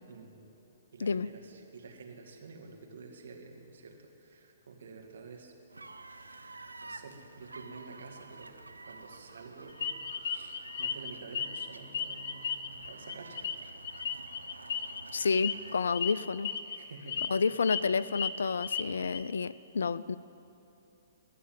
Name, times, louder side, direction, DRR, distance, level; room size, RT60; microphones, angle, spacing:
voice 1, 0.1-0.4 0.9-3.9 4.2-5.5 6.1-6.3 6.8-8.5 8.8-9.9 10.3-13.5 16.8-17.2, right 4 dB, 65° right, 2 dB, 2.0 m, -49 dB
voice 2, 1.0-1.3 15.1-16.5 17.3-20.2, left 5 dB, 70° left, 18 dB, 0.4 m, -30 dB
sound 1, 5.7-15.8, right 3 dB, 85° right, 0.7 m, -50 dB
sound 2, 9.8-11.7 11.9-15.0 15.3-15.5 15.9-16.1 16.4-16.8 17.1-17.8 18.1-19.2, left 7 dB, 50° left, 0.8 m, -35 dB
20.5 x 6.9 x 9.2 m, 2.9 s
figure-of-eight pair, 120°, 0 cm